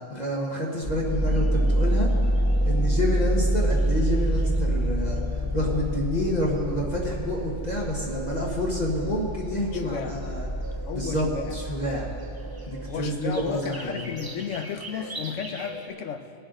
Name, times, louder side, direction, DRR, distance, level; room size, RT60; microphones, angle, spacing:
voice 1, 0.1-2.1 2.6-5.2 5.5-10.5 10.9-12.1 12.7-14.0, left 1 dB, 35° left, -3 dB, 1.3 m, -28 dB
sound 1, 0.8-13.5, right 1 dB, 15° left, 0.8 m, -27 dB
sound 2, 1.1-15.9, right 2 dB, 20° right, 0.7 m, -44 dB
voice 2, 9.7-10.1 10.8-11.5 12.9-16.3, left 7 dB, 85° left, 7 dB, 1.1 m, -33 dB
20.0 x 7.1 x 3.8 m, 2.5 s
omnidirectional pair, 1.3 m